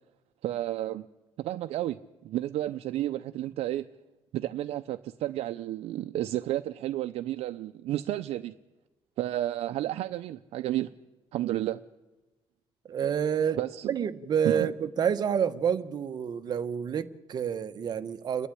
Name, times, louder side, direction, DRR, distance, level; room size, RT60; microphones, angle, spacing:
voice 1, 0.4-1.1 1.4-3.9 4.3-8.5 9.2-10.9 11.3-11.8 13.6-14.0 14.4-14.7, right 14 dB, 85° right, 0.7 m, -31 dB
voice 2, 12.9-13.6 13.9-18.5, right 8 dB, 40° right, 1.1 m, -28 dB
29.0 x 11.5 x 10.0 m
cardioid pair, 160°, 10 cm